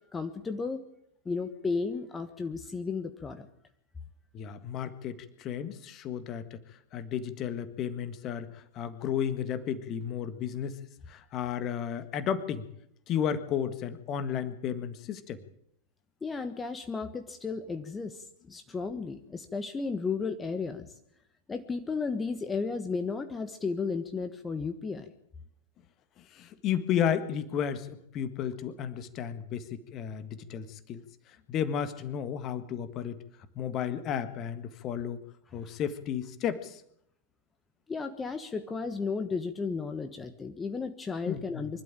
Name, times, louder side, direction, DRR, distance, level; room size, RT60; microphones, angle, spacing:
voice 1, 0.1-0.8 1.2-3.5 16.2-20.9 21.5-25.1 35.6-35.7 37.9-41.8, left 4 dB, 15° left, 8 dB, 1.3 m, -34 dB
voice 2, 4.3-6.6 6.9-10.8 11.1-12.7 13.1-15.4 26.2-31.0 31.5-33.2 33.5-35.2 35.5-36.8 41.3-41.4, left 8 dB, 35° left, 12 dB, 1.6 m, -33 dB
24.5 x 12.5 x 8.8 m, 0.76 s
figure-of-eight pair, 90°, 0 cm